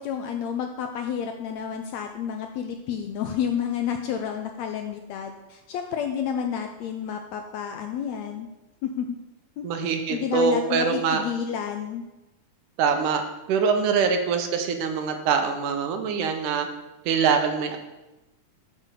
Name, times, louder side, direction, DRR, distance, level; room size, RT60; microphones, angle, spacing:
voice 1, 0.0-8.5 8.8-9.2 9.6-12.0, left 8 dB, 80° left, 5 dB, 1.6 m, -30 dB
voice 2, 9.6-11.2 12.8-13.2 13.5-16.7 17.1-17.8, right 6 dB, 80° right, 5 dB, 2.4 m, -24 dB
7.2 x 6.7 x 5.6 m, 1.0 s
omnidirectional pair, 3.6 m